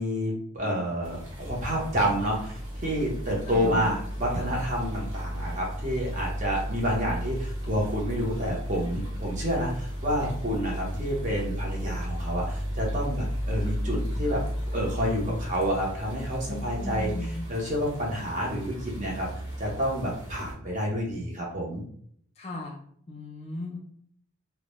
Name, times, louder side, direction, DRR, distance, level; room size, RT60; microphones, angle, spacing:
voice 1, 0.0-14.4 14.7-19.3 19.6-21.8, equal, 40° right, -2 dB, 0.6 m, -29 dB
sound 1, 1.0-20.5, equal, 70° right, 0.8 m, -34 dB
voice 2, 3.5-4.0 16.5-17.4 22.4-22.8 23.1-23.8, left 2 dB, 30° left, 0 dB, 0.3 m, -36 dB
2.1 x 2.0 x 2.9 m, 0.63 s
head